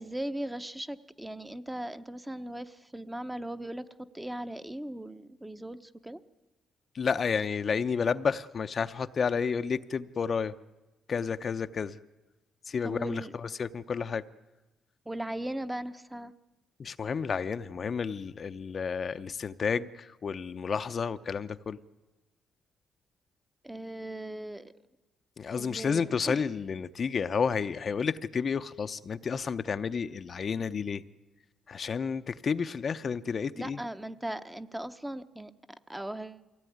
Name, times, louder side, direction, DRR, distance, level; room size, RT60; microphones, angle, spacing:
voice 1, 0.0-3.9 4.1-6.2 12.8-13.3 15.1-16.3 23.6-24.7 25.5-26.4 33.6-35.5 35.9-36.4, right 1 dB, 10° right, 11 dB, 0.9 m, -38 dB
voice 2, 6.9-10.6 11.1-12.0 12.7-14.2 16.8-21.8 25.4-31.0 31.7-33.8, left 6 dB, 45° left, 10 dB, 0.7 m, -31 dB
23.0 x 16.5 x 9.4 m, 1.1 s
cardioid pair, 90°, 0 cm